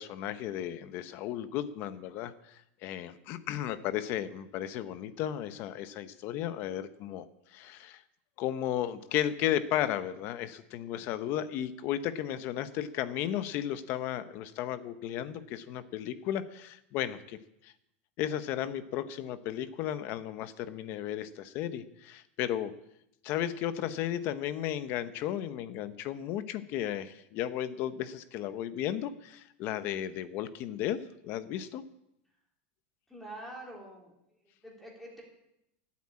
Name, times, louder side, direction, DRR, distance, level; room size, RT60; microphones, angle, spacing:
voice 1, 0.0-7.3 7.5-8.0 8.4-17.4 17.6-17.7 18.2-22.7 23.2-31.0 31.2-31.8, left 11 dB, 35° left, 13 dB, 0.7 m, -34 dB
voice 2, 33.1-34.1 34.4-35.2, right 1 dB, 5° left, -2 dB, 3.4 m, -46 dB
14.0 x 8.4 x 8.5 m, 0.80 s
supercardioid pair, 175°, 7 cm